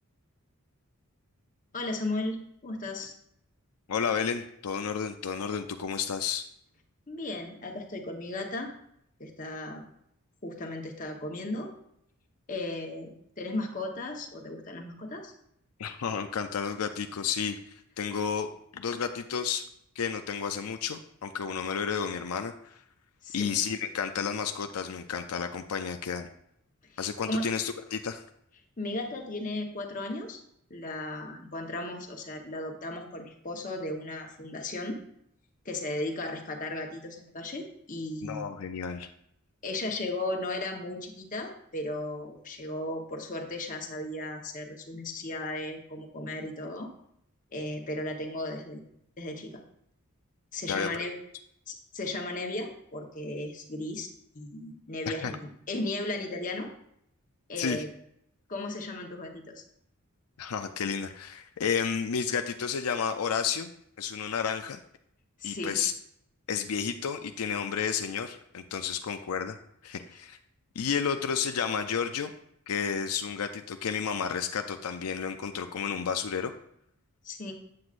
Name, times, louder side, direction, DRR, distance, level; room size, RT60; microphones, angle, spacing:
voice 1, 1.7-3.1 7.1-8.7 9.2-9.8 10.4-11.7 12.5-13.1 13.4-15.3 23.2-23.6 26.9-27.5 28.8-30.4 30.7-35.0 35.6-38.5 39.6-46.9 47.5-48.8 49.2-49.6 50.5-51.2 51.7-54.1 54.3-56.7 57.5-57.9 58.5-59.6 65.4-65.8 77.2-77.5, left 2 dB, 35° left, 2 dB, 1.1 m, -35 dB
voice 2, 3.9-6.5 15.8-17.6 18.0-19.7 20.0-22.8 23.3-26.3 27.0-28.2 38.2-39.1 50.7-50.9 55.1-55.3 57.6-57.8 60.4-63.7 64.0-64.8 65.4-65.9 66.5-69.6 69.8-70.4 70.8-72.3 72.7-76.5, left 6 dB, 85° left, 7 dB, 0.5 m, -31 dB
8.5 x 7.9 x 2.5 m, 0.72 s
head